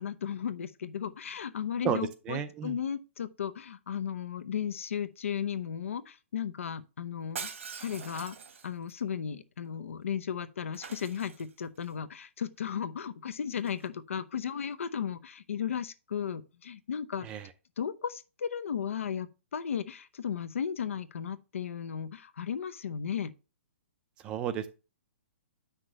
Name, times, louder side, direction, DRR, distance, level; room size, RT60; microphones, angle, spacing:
voice 1, 0.0-7.5 7.8-8.4 8.6-17.3 17.8-23.3, left 8 dB, 80° left, 0.8 m, -35 dB
voice 2, 1.8-2.8 17.2-17.5 24.2-24.7, right 9 dB, 15° right, 0.4 m, -33 dB
Shatter, 7.3-8.9 10.7-11.8 13.6-13.9, right 6 dB, 75° right, 1.3 m, -43 dB
7.9 x 6.0 x 3.0 m
hypercardioid pair, 175°, 7 cm